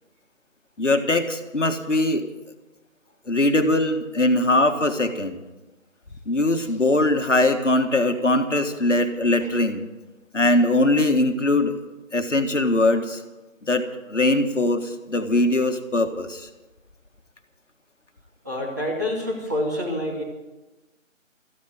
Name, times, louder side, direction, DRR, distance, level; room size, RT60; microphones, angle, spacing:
voice 1, 0.8-2.2 3.3-5.4 6.3-9.9 10.3-11.7 12.1-13.2 13.6-16.5, left 2 dB, 65° left, 6 dB, 1.7 m, -21 dB
voice 2, 18.4-20.2, left 1 dB, 15° right, -5 dB, 1.9 m, -27 dB
14.5 x 9.6 x 9.1 m, 1.1 s
figure-of-eight pair, 170°, 40 cm